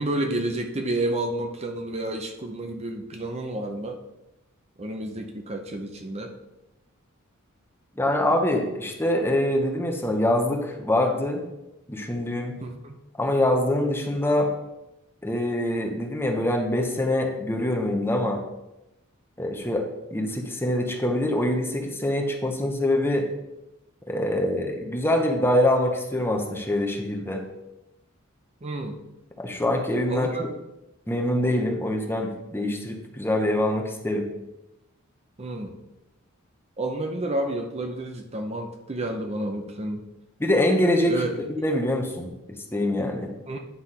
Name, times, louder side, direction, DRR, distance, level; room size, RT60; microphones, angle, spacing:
voice 1, 0.0-4.0 4.8-6.3 12.6-13.0 28.6-29.0 30.1-30.5 35.4-35.8 36.8-40.1 41.1-41.3 41.6-41.7 43.5-43.6, right 1 dB, 30° right, 4 dB, 0.7 m, -30 dB
voice 2, 8.0-11.4 11.9-12.5 13.2-14.5 15.2-18.4 19.4-19.8 20.1-23.3 24.1-27.4 29.4-30.3 31.1-34.3 40.4-42.3 42.7-43.3, left 1 dB, 10° left, 2 dB, 0.9 m, -24 dB
9.6 x 3.5 x 5.7 m, 0.95 s
head